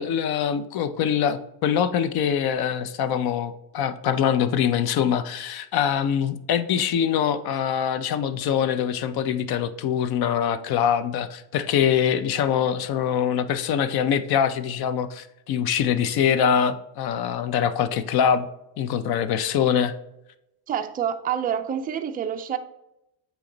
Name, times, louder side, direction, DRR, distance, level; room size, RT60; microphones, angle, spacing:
voice 1, 0.0-18.5 18.8-19.9, left 8 dB, 50° left, 13 dB, 0.6 m, -24 dB
voice 2, 20.7-22.6, right 9 dB, 20° right, 6 dB, 0.3 m, -27 dB
8.3 x 3.1 x 3.8 m, 0.87 s
cardioid pair, 120°, 49 cm